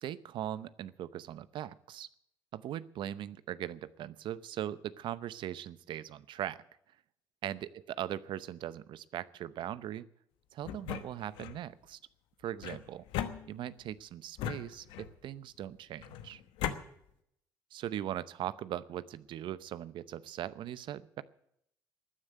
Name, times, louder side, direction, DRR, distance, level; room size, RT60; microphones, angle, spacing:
voice 1, 0.0-2.1 2.5-6.6 7.4-7.7 8.0-10.0 10.5-12.0 12.4-13.0 13.5-16.4 17.7-21.2, right 11 dB, 65° right, 16 dB, 0.8 m, -40 dB
sound 1, 10.6-11.6 12.6-13.9 14.4-15.3 16.0-16.8, left 10 dB, 80° left, 1.1 m, -38 dB
14.0 x 9.8 x 9.2 m, 0.74 s
hypercardioid pair, 60°, 9 cm